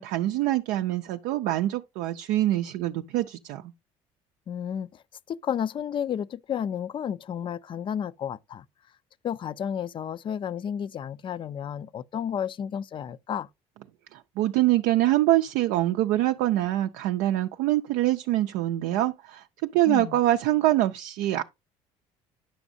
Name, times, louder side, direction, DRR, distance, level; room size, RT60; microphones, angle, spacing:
voice 1, 0.0-3.6 14.1-19.4 19.7-21.4, right 15 dB, 80° right, 0.4 m, -24 dB
voice 2, 4.5-5.0 5.3-8.6 9.2-13.5 19.9-20.2, left 8 dB, 40° left, 0.4 m, -32 dB
9.8 x 6.1 x 2.6 m
supercardioid pair, 90°, 13 cm